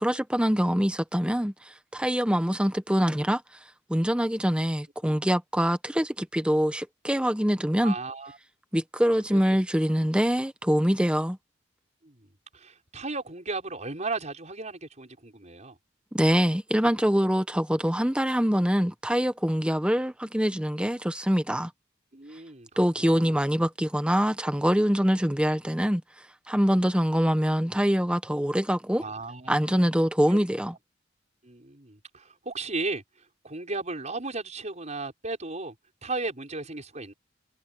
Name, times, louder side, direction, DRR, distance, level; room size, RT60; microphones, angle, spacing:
voice 1, 0.0-3.4 3.9-7.9 8.7-11.4 16.1-21.7 22.8-26.0 26.5-29.0 29.5-30.7, equal, 5° right, 1.1 m, -24 dB
voice 2, 7.8-8.4 9.3-9.4 12.0-12.3 12.5-15.8 22.1-22.7 23.0-23.4 28.9-29.9 30.3-30.4 31.4-33.0 33.4-35.8 36.0-37.1, right 3 dB, 35° right, 5.6 m, -35 dB
head